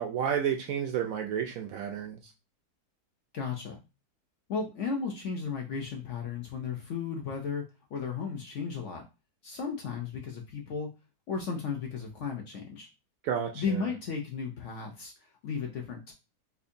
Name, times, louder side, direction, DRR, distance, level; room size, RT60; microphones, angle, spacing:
voice 1, 0.0-2.2 13.2-13.9, right 8 dB, 70° right, 3 dB, 0.8 m, -31 dB
voice 2, 3.3-3.8 4.5-7.6 7.9-9.0 9.4-10.9 11.3-12.9 13.5-15.1 15.4-16.1, left 5 dB, 65° left, 2 dB, 0.8 m, -34 dB
4.3 x 2.4 x 2.6 m, 0.28 s
omnidirectional pair, 1.8 m